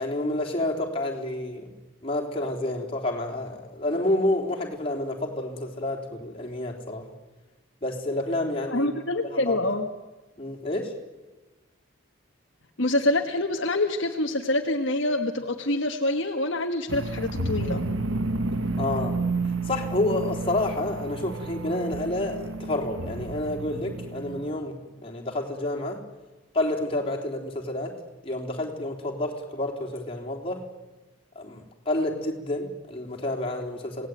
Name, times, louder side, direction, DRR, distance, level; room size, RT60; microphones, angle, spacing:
voice 1, 0.0-1.7 2.0-7.0 7.8-8.9 9.2-9.6 10.4-10.9 18.8-19.2 19.7-24.8 25.0-26.0 26.5-28.0 28.2-30.6 31.4-34.1, left 1 dB, 25° left, 0 dB, 3.6 m, -29 dB
voice 2, 8.7-9.9 12.8-17.8, left 2 dB, 60° left, 3 dB, 1.6 m, -26 dB
sound 1, 16.9-24.5, right 3 dB, 65° right, 1.3 m, -31 dB
27.0 x 18.5 x 9.3 m, 1.2 s
head